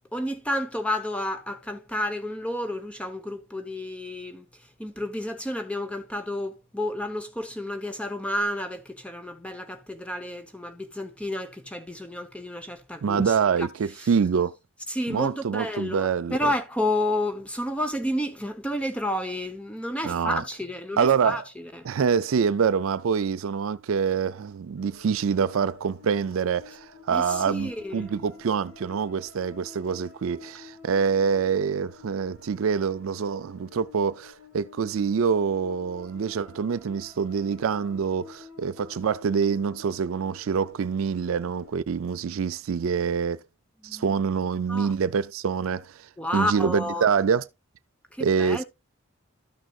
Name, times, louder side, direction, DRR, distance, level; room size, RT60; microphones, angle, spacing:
voice 1, 0.1-4.5 4.8-13.7 14.9-21.9 27.1-28.1 43.8-44.2 44.7-44.9 46.2-47.1 48.1-48.6, left 1 dB, 5° left, 1.0 m, -31 dB
voice 2, 13.0-14.5 15.1-16.5 20.0-20.4 21.0-21.4 21.8-43.4 43.8-45.9 46.3-47.5 48.2-48.6, right 6 dB, 75° right, 0.4 m, -25 dB
sound 1, 24.8-41.8, left 5 dB, 60° left, 4.0 m, -50 dB
13.0 x 6.3 x 2.4 m
head